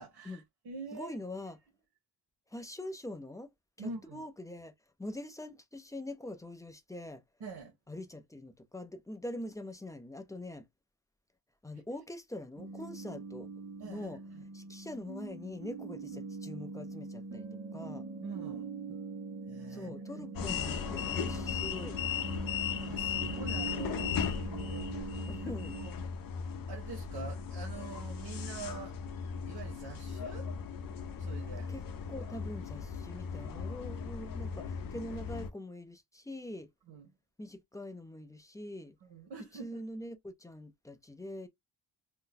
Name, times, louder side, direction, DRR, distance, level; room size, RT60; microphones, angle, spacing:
voice 1, 0.0-1.2 3.8-4.2 7.4-7.8 13.8-14.5 18.2-18.7 19.5-21.2 22.8-24.1 25.4-25.9 26.7-29.0 29.5-30.5 31.2-31.7 36.9-37.1 39.0-39.8, right 4 dB, 85° right, 0.9 m, -46 dB
voice 2, 0.9-1.6 2.5-3.5 3.8-4.7 5.0-7.2 7.9-10.7 11.6-13.5 13.9-14.2 14.5-17.5 17.7-18.1 19.7-22.0 24.4-24.9 25.2-25.7 31.7-36.7 37.4-39.0 39.5-41.5, left 1 dB, 10° left, 0.4 m, -43 dB
sound 1, 12.6-25.9, right 4 dB, 45° right, 0.6 m, -42 dB
sound 2, 20.3-35.5, left 6 dB, 60° left, 0.6 m, -37 dB
2.6 x 2.1 x 3.8 m
wide cardioid pair, 150°, 39 cm